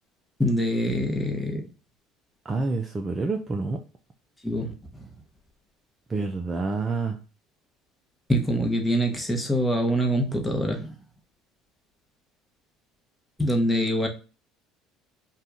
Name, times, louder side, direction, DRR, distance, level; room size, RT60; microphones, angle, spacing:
voice 1, 0.4-1.6 4.4-4.7 8.3-10.9 13.4-14.1, equal, 10° left, 1.0 m, -24 dB
voice 2, 2.4-3.8 6.1-7.2, right 3 dB, 25° right, 0.5 m, -28 dB
2.7 x 2.4 x 3.5 m
supercardioid pair, 80°, 0 cm